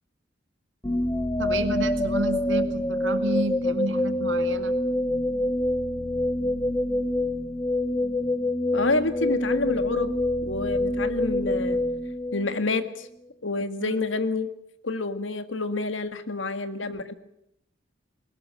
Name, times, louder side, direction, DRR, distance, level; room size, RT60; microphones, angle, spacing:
sound 1, 0.8-12.9, left 1 dB, 15° left, 0.9 m, -26 dB
voice 1, 1.4-4.7 13.8-14.0, right 2 dB, 75° right, 9 dB, 2.1 m, -30 dB
voice 2, 8.7-10.1 10.4-11.8 12.3-13.1 13.4-14.5 14.8-17.2, left 3 dB, 80° left, 11 dB, 1.8 m, -28 dB
21.0 x 19.5 x 8.9 m, 0.75 s
head